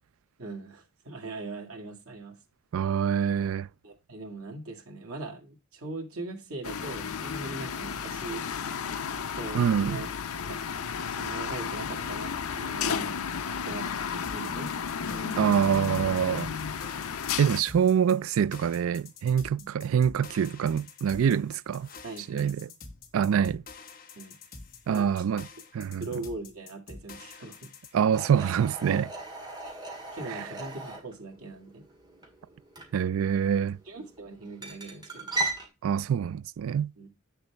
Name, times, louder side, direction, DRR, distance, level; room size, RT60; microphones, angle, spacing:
voice 1, 0.4-2.4 3.8-8.5 9.2-10.1 10.4-10.6 11.2-13.2 13.6-14.7 15.1-15.5 19.6-19.7 22.0-22.6 24.2-24.4 24.9-25.2 26.0-27.7 30.1-31.8 33.9-35.3 37.0-37.1, right 2 dB, 90° right, 1.9 m, -40 dB
voice 2, 2.7-3.7 9.5-10.0 15.4-16.5 17.4-21.9 22.3-22.7 23.1-23.6 24.9-25.5 25.7-26.1 27.9-29.1 30.3-30.4 32.9-33.8 35.8-36.9, right 8 dB, 75° right, 0.3 m, -25 dB
sound 1, 6.6-17.6, left 6 dB, 90° left, 0.6 m, -33 dB
sound 2, 14.2-27.9, left 4 dB, 40° left, 1.3 m, -48 dB
sound 3, 28.1-35.7, right 2 dB, 20° right, 1.8 m, -38 dB
8.1 x 6.7 x 3.3 m
head